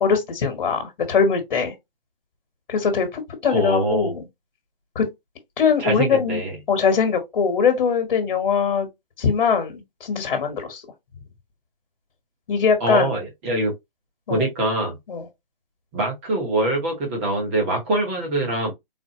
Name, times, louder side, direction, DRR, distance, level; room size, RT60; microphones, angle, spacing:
voice 1, 0.0-1.7 2.7-4.3 4.9-5.1 5.6-6.4 6.7-8.9 9.2-10.8 12.5-13.2 14.3-14.5 15.1-15.3, left 6 dB, 50° left, 1.3 m, -21 dB
voice 2, 3.5-4.1 5.8-6.5 12.8-13.7 14.3-15.0 15.9-18.7, right 2 dB, 15° right, 0.9 m, -24 dB
4.1 x 2.1 x 2.9 m
hypercardioid pair, 160°, 29 cm